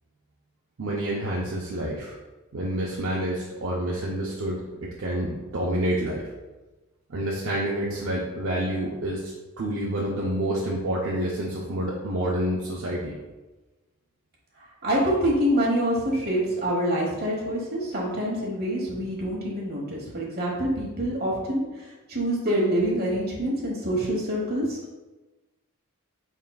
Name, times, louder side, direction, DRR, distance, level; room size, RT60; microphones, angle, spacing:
voice 1, 0.8-2.1 2.5-6.3 7.1-9.3 9.6-13.2, right 1 dB, 60° right, -4 dB, 0.5 m, -28 dB
voice 2, 14.8-21.6 22.1-25.0, equal, 45° right, -4 dB, 1.1 m, -26 dB
4.6 x 3.6 x 2.3 m, 1.1 s
head